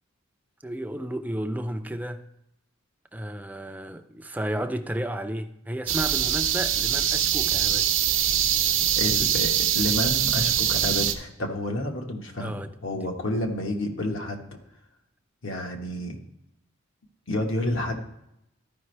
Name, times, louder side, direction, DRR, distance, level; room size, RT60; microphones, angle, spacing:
voice 1, 0.6-2.3 3.1-8.0 12.4-13.1, right 1 dB, 10° right, 0.4 m, -33 dB
sound 1, 5.9-11.1, right 10 dB, 70° right, 0.7 m, -23 dB
voice 2, 9.0-14.5 15.4-16.2 17.3-18.0, left 1 dB, 70° left, 1.3 m, -30 dB
13.0 x 5.2 x 3.3 m
head